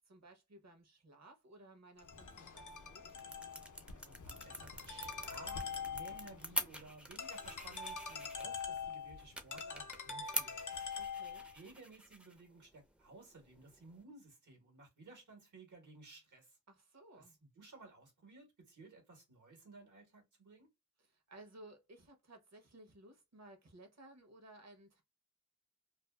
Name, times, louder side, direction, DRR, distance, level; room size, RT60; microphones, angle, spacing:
voice 1, 0.0-3.1 11.0-11.5 16.7-17.4 21.0-25.0, right 1 dB, 60° right, 0.8 m, -58 dB
Ringtone, 2.0-11.5, left 5 dB, 85° left, 0.5 m, -45 dB
sound 1, 2.5-14.0, equal, 5° right, 0.4 m, -47 dB
voice 2, 3.8-10.9 11.5-16.6 17.2-20.7, right 3 dB, 80° right, 1.2 m, -57 dB
2.5 x 2.3 x 2.2 m
wide cardioid pair, 75°, 30 cm